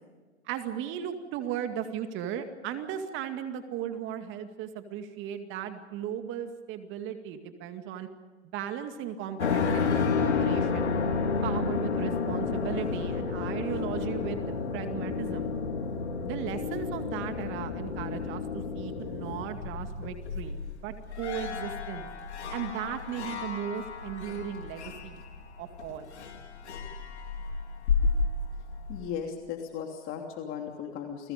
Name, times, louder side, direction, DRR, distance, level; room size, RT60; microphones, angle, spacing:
voice 1, 0.4-8.1 8.5-10.9 11.4-15.5 16.2-22.1 22.5-25.2 25.6-26.1, right 9 dB, 35° right, 7 dB, 2.2 m, -36 dB
sound 1, 9.4-29.2, left 5 dB, 80° left, 3.6 m, -31 dB
voice 2, 28.9-31.3, left 8 dB, 40° left, 3 dB, 3.0 m, -36 dB
30.0 x 21.5 x 5.2 m, 1.4 s
hypercardioid pair, 120°, 34 cm